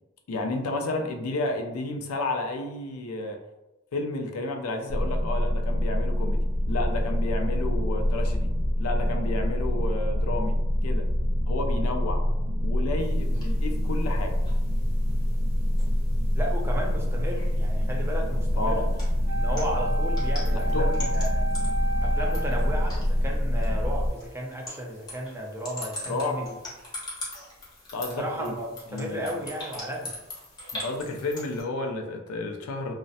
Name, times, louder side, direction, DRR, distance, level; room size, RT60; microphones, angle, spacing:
voice 1, 0.3-3.4 3.9-8.5 8.8-10.5 10.8-11.0 11.5-12.2 12.6-14.4 18.6-18.9 20.5-20.9 26.1-26.5 27.9-28.5 28.9-29.3 30.8-32.9, left 2 dB, 85° left, 4 dB, 0.4 m, -31 dB
sound 1, 4.9-24.1, equal, 90° right, 0.4 m, -25 dB
sound 2, 13.0-31.6, left 1 dB, 20° left, 0.8 m, -43 dB
voice 2, 16.3-18.9 19.3-21.5 22.0-26.5 28.2-30.1, equal, 10° right, -1 dB, 0.3 m, -34 dB
Wind instrument woodwind instrument, 19.2-23.0, right 1 dB, 65° right, 0.8 m, -33 dB
2.4 x 2.0 x 2.6 m, 1.0 s
head